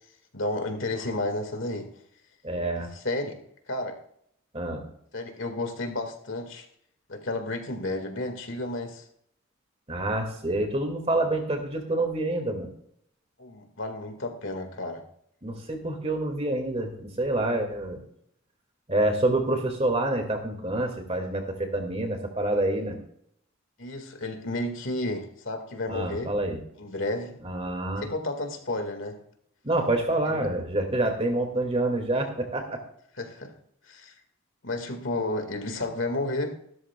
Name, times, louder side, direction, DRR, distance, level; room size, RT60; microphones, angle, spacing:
voice 1, 0.3-1.9 3.0-3.4 3.7-4.0 5.1-6.7 7.1-9.0 13.4-15.0 23.8-26.3 26.8-27.4 28.0-29.2 30.3-30.5 33.2-33.5 33.9-34.1 34.6-36.6, left 2 dB, 65° left, 5 dB, 2.1 m, -32 dB
voice 2, 2.4-2.9 4.5-4.8 9.9-12.7 15.4-18.0 18.9-23.0 25.9-26.6 27.4-28.1 29.6-32.8, right 2 dB, 30° right, 4 dB, 2.4 m, -27 dB
15.0 x 13.0 x 2.4 m, 0.68 s
head